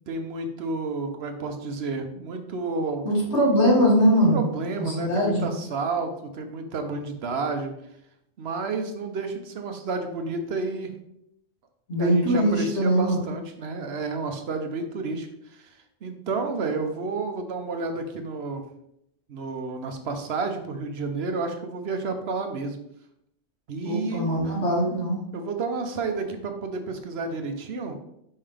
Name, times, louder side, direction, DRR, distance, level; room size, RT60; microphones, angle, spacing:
voice 1, 0.1-3.1 4.3-7.7 8.4-10.9 12.0-15.7 16.0-18.6 19.3-22.8 23.7-24.3 25.3-27.9, right 3 dB, 70° right, 6 dB, 1.0 m, -31 dB
voice 2, 3.0-4.4 4.8-5.5 11.9-13.2 23.8-25.2, equal, 85° left, -7 dB, 2.9 m, -21 dB
5.6 x 5.5 x 3.4 m, 0.78 s
omnidirectional pair, 1.1 m